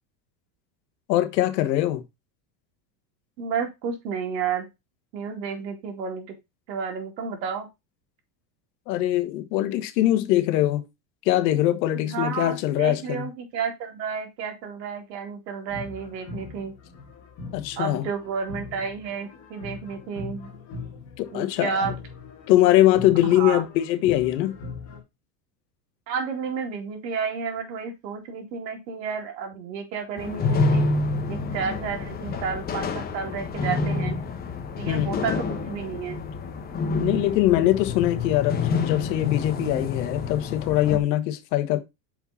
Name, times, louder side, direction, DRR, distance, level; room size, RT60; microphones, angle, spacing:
voice 1, 1.1-2.0 8.9-10.8 11.2-13.3 17.5-18.0 21.2-21.8 22.5-24.6 34.9-35.2 36.9-41.8, left 14 dB, 80° left, 1.3 m, -22 dB
voice 2, 3.4-4.7 5.1-6.4 6.7-7.7 11.9-16.7 17.8-20.5 21.3-22.0 23.2-23.6 26.1-30.9 31.3-34.2 34.8-36.2, right 6 dB, 85° right, 2.7 m, -31 dB
sound 1, 15.7-25.0, left 3 dB, 35° left, 2.5 m, -40 dB
sound 2, 30.2-41.0, left 3 dB, 20° left, 0.9 m, -28 dB
5.8 x 5.0 x 4.1 m
supercardioid pair, 150°, 50 cm